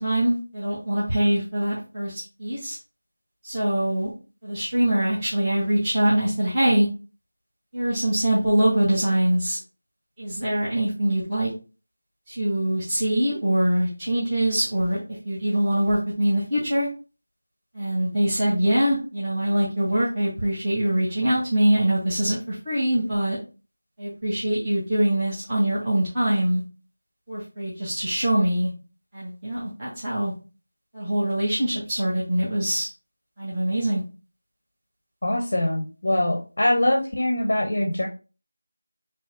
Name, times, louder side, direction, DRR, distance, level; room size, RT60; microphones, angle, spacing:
voice 1, 0.0-2.8 3.4-4.1 4.4-6.9 7.7-9.6 10.2-11.5 12.3-16.9 17.7-23.4 24.0-26.6 27.3-28.7 29.1-30.3 30.9-32.9 33.4-34.0, right 1 dB, 10° right, -11 dB, 0.6 m, -23 dB
voice 2, 35.2-38.1, left 1 dB, 45° left, 2 dB, 0.6 m, -23 dB
4.5 x 2.5 x 2.4 m, 0.33 s
figure-of-eight pair, 180°, 0 cm